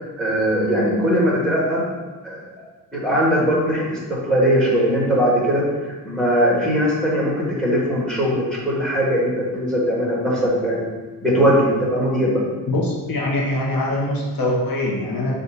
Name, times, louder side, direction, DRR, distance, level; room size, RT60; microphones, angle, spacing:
voice 1, 0.2-1.8 2.2-2.4 2.9-5.6 6.0-10.9 11.2-12.4, equal, ahead, -5 dB, 1.8 m, -20 dB
voice 2, 12.7-15.3, left 1 dB, 60° left, -3 dB, 1.2 m, -23 dB
6.7 x 2.8 x 5.1 m, 1.3 s
cardioid pair, 110°, 39 cm